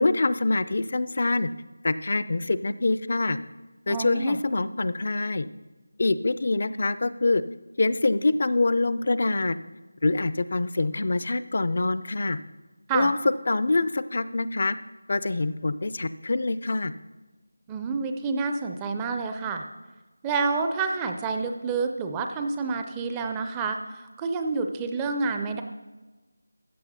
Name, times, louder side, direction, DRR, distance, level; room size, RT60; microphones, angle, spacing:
voice 1, 0.0-1.5 1.8-3.4 3.9-5.5 6.0-7.4 7.8-9.6 10.0-12.4 12.9-13.2 13.5-14.8 15.1-16.9, left 2 dB, 45° left, 15 dB, 0.4 m, -25 dB
voice 2, 3.9-4.4 12.9-13.1 17.7-19.6 20.2-23.8 24.2-25.6, right 4 dB, 10° right, 5 dB, 0.5 m, -28 dB
14.0 x 8.0 x 4.2 m, 1.2 s
figure-of-eight pair, 170°, 0 cm